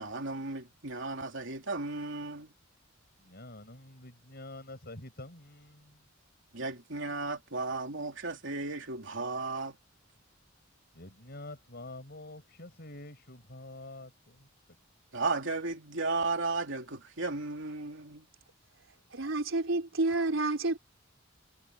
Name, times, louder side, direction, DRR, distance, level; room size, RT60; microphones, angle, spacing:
voice 1, 0.0-2.5 6.5-9.8 15.1-18.3, right 3 dB, 70° right, 3.2 m, -34 dB
voice 2, 3.2-6.1 10.9-14.5, left 2 dB, 55° left, 6.5 m, -47 dB
voice 3, 19.1-20.8, right 2 dB, 85° right, 3.5 m, -29 dB
head